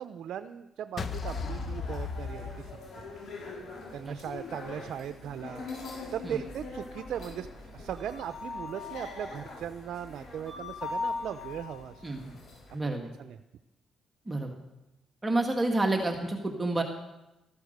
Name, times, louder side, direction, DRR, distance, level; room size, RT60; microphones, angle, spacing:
voice 1, 0.0-3.0 3.9-5.6 6.1-7.5 7.7-12.0 13.2-13.4, right 9 dB, 70° right, 10 dB, 0.6 m, -38 dB
sound 1, 1.0-3.3, left 4 dB, 45° left, 1.2 m, -35 dB
sound 2, 1.2-12.7, left 3 dB, 65° left, 5.8 m, -41 dB
voice 2, 12.0-12.4 12.7-13.1 14.3-14.5 15.2-16.8, right 2 dB, 20° right, 3 dB, 1.9 m, -29 dB
14.5 x 14.0 x 6.6 m, 0.98 s
cardioid pair, 90°, 0 cm